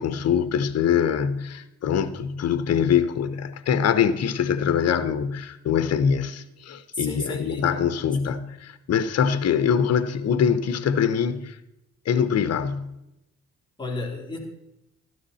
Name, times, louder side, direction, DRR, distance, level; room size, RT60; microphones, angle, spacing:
voice 1, 0.0-11.5 12.0-12.9, left 7 dB, 55° left, 1.1 m, -23 dB
voice 2, 6.9-7.7 8.2-8.3 13.8-14.4, left 2 dB, 15° left, 3.7 m, -32 dB
13.5 x 13.0 x 4.2 m
cardioid pair, 90°, 30 cm